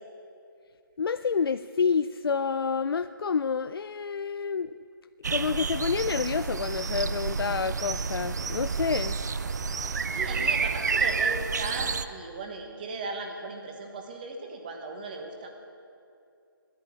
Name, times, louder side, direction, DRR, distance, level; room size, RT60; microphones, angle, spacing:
voice 1, 1.0-4.8 5.3-9.2, left 5 dB, 90° left, 12 dB, 0.4 m, -28 dB
sound 1, 5.2-12.0, right 5 dB, 50° right, 0.5 m, -29 dB
voice 2, 10.1-15.5, right 3 dB, 25° right, 3 dB, 1.2 m, -37 dB
11.0 x 9.1 x 10.0 m, 2.5 s
hypercardioid pair, 170°, 12 cm